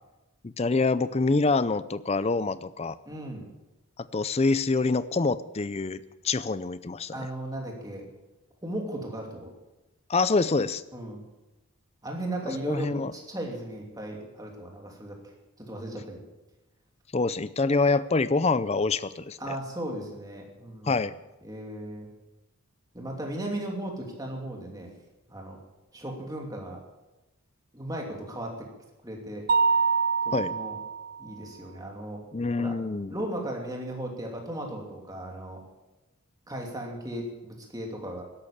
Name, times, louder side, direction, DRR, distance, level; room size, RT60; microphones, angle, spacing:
voice 1, 0.4-3.0 4.0-7.1 10.1-10.8 12.5-13.1 17.1-19.6 20.8-21.1 30.3-30.5 32.3-33.1, left 3 dB, 30° left, 16 dB, 0.5 m, -26 dB
voice 2, 3.1-3.5 7.1-8.1 8.6-9.5 10.9-11.2 12.0-15.2 15.6-16.2 19.4-21.0 21.4-22.1 22.9-24.9 25.3-25.6 25.9-26.8 27.7-28.7 29.0-29.4 30.2-30.7 31.2-32.2 32.6-32.8 33.1-35.6 36.5-38.2, right 1 dB, 15° right, 0 dB, 2.8 m, -36 dB
Mallet percussion, 29.5-31.3, right 5 dB, 40° right, 0.5 m, -25 dB
13.0 x 11.5 x 7.2 m, 1.0 s
head